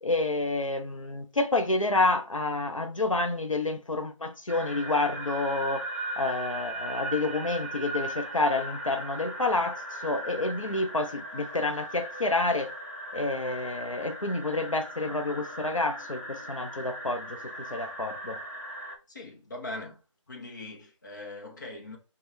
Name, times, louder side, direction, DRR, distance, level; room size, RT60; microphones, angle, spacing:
voice 1, 0.0-5.9 6.2-12.7 13.1-18.4, left 2 dB, 85° left, 0.8 m, -29 dB
sound 1, 4.5-19.0, right 1 dB, 30° right, 0.7 m, -38 dB
voice 2, 19.1-20.0 20.3-22.0, left 2 dB, 35° left, 0.8 m, -41 dB
4.6 x 2.3 x 3.2 m
figure-of-eight pair, 165°, 16 cm